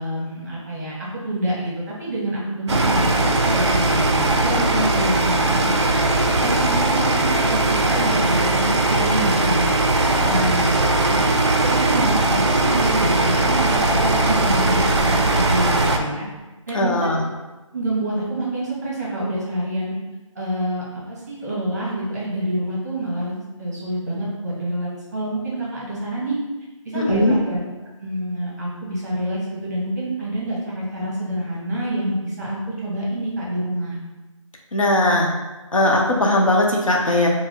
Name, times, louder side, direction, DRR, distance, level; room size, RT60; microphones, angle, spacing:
voice 1, 0.0-5.8 6.3-9.7 10.2-11.3 11.6-16.3 16.7-17.2 17.7-19.9 20.3-26.4 26.8-27.6 28.0-33.9, right 1 dB, 30° right, -6 dB, 0.9 m, -27 dB
sound 1, 2.7-16.0, right 2 dB, 55° right, 0.4 m, -19 dB
voice 2, 16.7-17.2 26.9-27.4 34.7-35.3 35.7-37.3, left 1 dB, 75° left, -1 dB, 0.8 m, -19 dB
4.1 x 2.0 x 2.9 m, 1.1 s
figure-of-eight pair, 170°, 17 cm